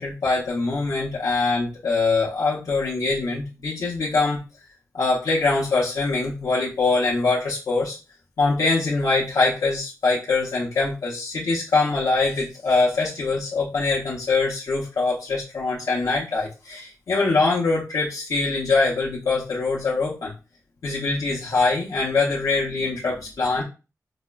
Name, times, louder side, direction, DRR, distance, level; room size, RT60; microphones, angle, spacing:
voice 1, 0.0-4.4 4.9-8.0 8.4-20.3 20.8-23.6, left 3 dB, 75° left, -5 dB, 0.7 m, -23 dB
4.8 x 2.1 x 2.2 m, 0.31 s
wide cardioid pair, 105°, 6 cm